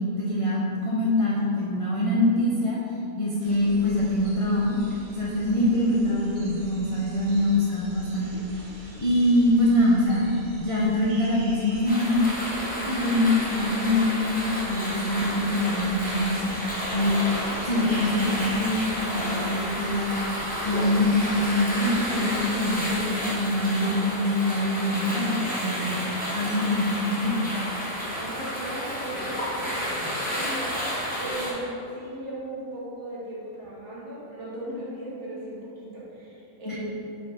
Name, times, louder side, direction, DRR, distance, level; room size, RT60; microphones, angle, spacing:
voice 1, 0.0-2.8 3.2-4.8 5.1-12.2 12.9-16.5 16.9-17.2 17.6-20.2 20.6-26.0 26.3-27.5 36.7-36.8, left 1 dB, 60° left, -6 dB, 0.3 m, -24 dB
sound 1, 3.4-23.0, right 1 dB, 80° right, 1.5 m, -45 dB
sound 2, 11.9-31.5, equal, 5° left, 0.9 m, -31 dB
voice 2, 28.1-30.8 31.2-36.8, right 1 dB, 50° right, -7 dB, 1.6 m, -37 dB
5.4 x 4.4 x 4.1 m, 2.7 s
omnidirectional pair, 1.7 m